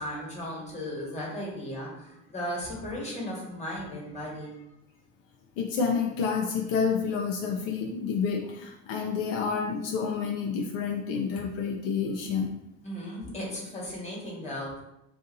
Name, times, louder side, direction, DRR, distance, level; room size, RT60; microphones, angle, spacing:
voice 1, 0.0-4.5 12.8-14.8, equal, 20° left, -4 dB, 1.4 m, -36 dB
voice 2, 5.6-12.5, left 6 dB, 75° left, 1 dB, 0.6 m, -29 dB
2.7 x 2.5 x 3.9 m, 0.86 s
supercardioid pair, 105°, 34 cm